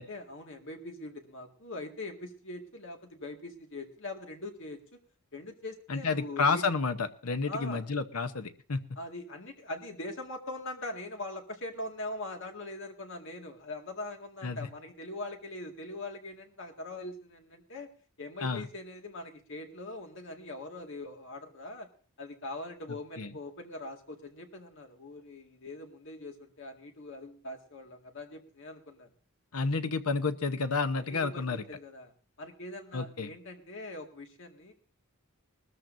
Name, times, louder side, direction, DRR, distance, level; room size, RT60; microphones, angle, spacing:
voice 1, 0.0-4.8 5.3-6.6 7.5-7.9 9.0-17.9 18.2-21.9 22.2-29.1 30.9-32.1 32.4-34.7, left 2 dB, 60° left, 3 dB, 2.0 m, -42 dB
voice 2, 5.9-8.8 14.4-14.7 18.4-18.7 23.2-23.3 29.5-31.6 32.9-33.3, left 4 dB, 90° left, 10 dB, 0.9 m, -30 dB
20.5 x 13.5 x 2.7 m, 0.41 s
head